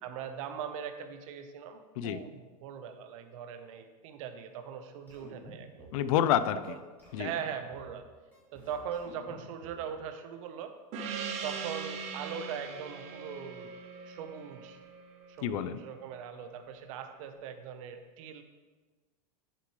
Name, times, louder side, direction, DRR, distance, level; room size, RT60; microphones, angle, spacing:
voice 1, 0.0-5.9 6.7-6.8 7.2-8.1 8.5-10.7 11.4-13.7 14.1-14.8 15.4-18.4, right 7 dB, 55° right, 7 dB, 1.0 m, -40 dB
sound 1, 5.1-6.1 6.6-6.7 7.0-8.0 8.3-9.9, right 1 dB, 10° left, 3.1 m, -51 dB
voice 2, 5.9-6.8 7.1-7.3 15.4-15.8, left 10 dB, 60° left, 14 dB, 0.5 m, -28 dB
Gong, 10.9-15.9, right 6 dB, 35° right, 0.9 m, -41 dB
11.0 x 7.5 x 3.2 m, 1.3 s
supercardioid pair, 150°, 20 cm